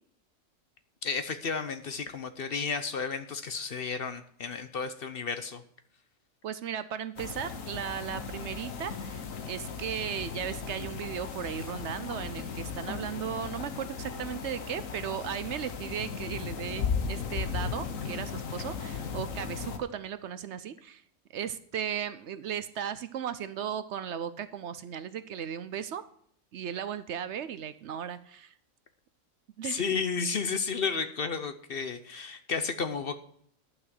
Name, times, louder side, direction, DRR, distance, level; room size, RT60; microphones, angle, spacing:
voice 1, 1.0-5.6 29.6-33.2, left 5 dB, 50° left, 10 dB, 0.9 m, -32 dB
voice 2, 6.4-21.0 21.3-26.0 26.5-28.5 29.6-29.8, right 9 dB, 65° right, 13 dB, 0.9 m, -36 dB
sound 1, 7.2-19.8, left 6 dB, 80° left, 1.5 m, -36 dB
11.5 x 6.1 x 7.6 m, 0.64 s
omnidirectional pair, 1.4 m